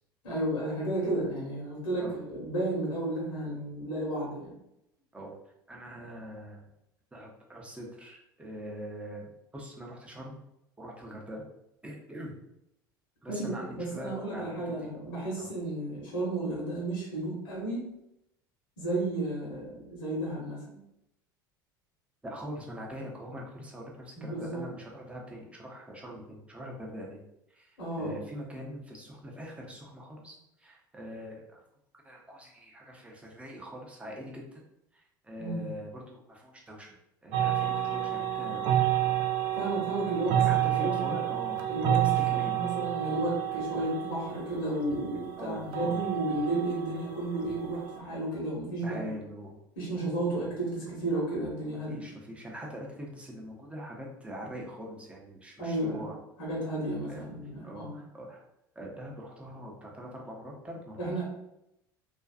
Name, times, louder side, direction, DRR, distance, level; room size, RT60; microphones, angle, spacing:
voice 1, 0.2-4.5 13.3-17.8 18.8-20.8 24.2-24.6 27.8-28.2 35.4-35.7 39.5-41.2 41.7-49.1 49.8-52.0 55.6-56.1 56.4-58.0 61.0-61.2, right 1 dB, 70° left, -5 dB, 1.0 m, -33 dB
voice 2, 5.7-6.6 7.1-10.4 10.8-11.4 11.8-12.4 13.2-14.7 15.4-15.5 22.2-27.2 27.5-31.6 32.0-34.6 34.9-37.0 37.2-38.6 40.4-42.6 45.4-46.0 48.8-49.6 51.9-56.2 57.1-57.2 57.6-58.4 58.8-61.0, equal, 10° right, -1 dB, 0.6 m, -43 dB
sound 1, 37.3-48.0, right 12 dB, 45° right, 0.4 m, -30 dB
2.5 x 2.3 x 2.3 m, 0.83 s
figure-of-eight pair, 70°, 11 cm